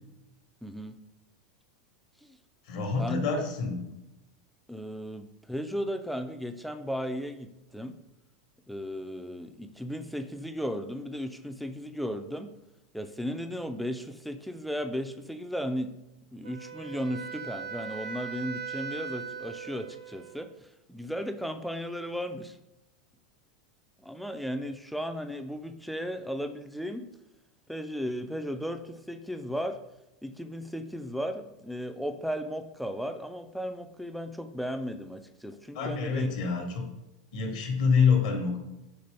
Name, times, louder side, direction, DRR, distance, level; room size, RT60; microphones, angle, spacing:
voice 1, 0.6-1.0 2.2-2.4 3.0-3.4 4.7-8.0 8.7-12.5 12.9-15.9 16.3-22.6 24.0-27.1 27.7-29.8 30.2-36.3, equal, ahead, 7 dB, 0.3 m, -35 dB
voice 2, 2.7-3.8 35.7-36.8 37.3-38.6, left 5 dB, 75° left, 3 dB, 1.0 m, -26 dB
Wind instrument woodwind instrument, 16.4-20.5, right 6 dB, 80° right, 0.4 m, -39 dB
4.1 x 3.0 x 3.3 m, 0.90 s
hypercardioid pair, 110°, 3 cm